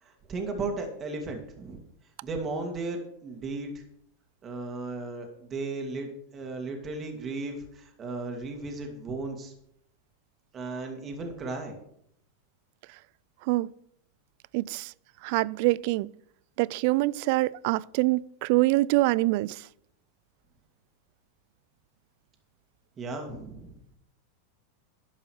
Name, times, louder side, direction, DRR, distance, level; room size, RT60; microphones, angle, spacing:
voice 1, 0.0-1.8 2.2-3.8 4.4-9.5 10.5-11.7 23.0-23.8, right 3 dB, 30° right, 2.2 m, -35 dB
voice 2, 14.5-14.9 15.2-16.1 16.6-19.6, right 20 dB, 60° right, 0.3 m, -25 dB
11.5 x 5.4 x 6.4 m
hypercardioid pair, 105°, 0 cm